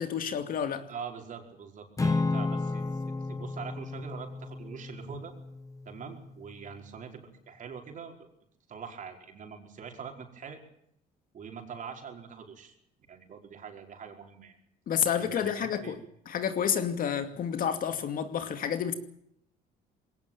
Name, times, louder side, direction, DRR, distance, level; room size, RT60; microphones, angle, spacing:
voice 1, 0.0-0.9 14.9-16.0 16.3-18.9, left 8 dB, 55° left, 2.5 m, -30 dB
voice 2, 0.9-5.3 5.9-8.2 8.7-10.6 11.3-12.7 13.1-14.6 15.2-16.0, right 6 dB, 50° right, 5.1 m, -43 dB
Acoustic guitar / Strum, 2.0-6.4, left 3 dB, 20° left, 1.7 m, -33 dB
21.0 x 18.0 x 9.1 m
cardioid pair, 110°, 17 cm